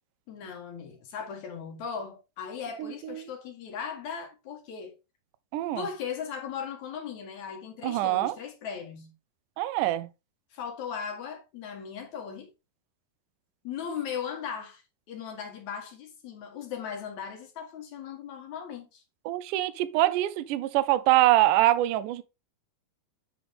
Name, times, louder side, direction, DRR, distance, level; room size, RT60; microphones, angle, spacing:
voice 1, 0.3-5.0 5.8-9.1 10.5-12.5 13.6-14.8 15.1-19.0, left 7 dB, 60° left, 2.3 m, -38 dB
voice 2, 5.5-5.9 7.8-8.4 9.6-10.1 19.3-22.2, right 15 dB, 85° right, 1.8 m, -24 dB
9.0 x 4.7 x 3.5 m
omnidirectional pair, 4.4 m